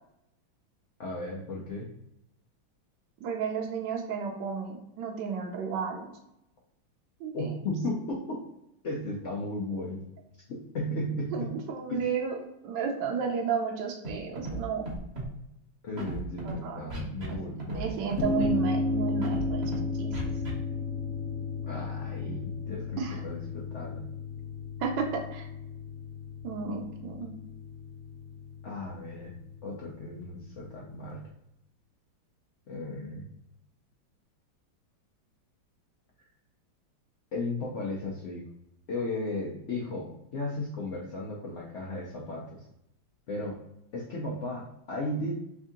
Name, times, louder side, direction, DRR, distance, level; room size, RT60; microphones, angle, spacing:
voice 1, 1.0-1.9 7.3-8.4 8.8-10.0 10.5-11.6 11.9-12.1 15.8-17.9 21.7-24.0 28.6-29.3 29.6-31.2 32.7-33.3 37.3-38.4 38.9-42.7 43.3-43.6 43.9-45.3, left 1 dB, 85° left, -3 dB, 0.6 m, -35 dB
voice 2, 3.2-6.1 7.2-7.5 11.3-12.3 12.6-14.8 16.4-16.8 17.7-20.2 23.0-23.2 24.8-25.5 26.4-27.3, right 5 dB, 70° right, 2 dB, 1.2 m, -33 dB
Scratching (performance technique), 14.0-14.1 14.4-14.6 14.8-15.3 16.0-16.5 16.9-17.3 17.6-17.8 18.1-18.5 19.2-19.8 20.1-20.5, right 2 dB, 40° right, 1.1 m, -35 dB
sound 1, 18.2-31.1, left 2 dB, 60° left, 0.9 m, -34 dB
3.6 x 2.7 x 3.5 m, 0.83 s
omnidirectional pair, 2.2 m